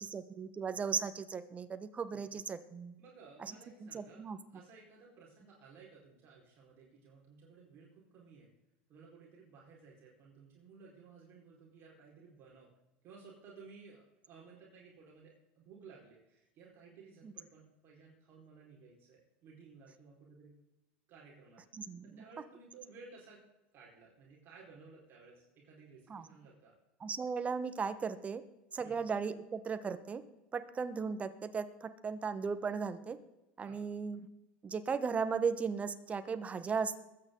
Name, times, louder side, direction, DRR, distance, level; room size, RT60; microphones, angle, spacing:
voice 1, 0.0-2.9 3.4-3.5 3.8-4.4 21.7-22.1 26.1-26.2 27.0-28.4 28.7-30.2 30.5-33.2 33.6-34.2 34.6-37.0, right 5 dB, 25° right, 12 dB, 1.2 m, -36 dB
voice 2, 3.0-4.2 4.5-8.5 8.9-12.7 13.0-20.5 21.1-23.4 23.7-26.8 28.8-29.0 33.6-33.9, right 4 dB, 45° right, -3 dB, 4.6 m, -57 dB
22.5 x 9.1 x 3.9 m, 0.97 s
supercardioid pair, 110°, 6 cm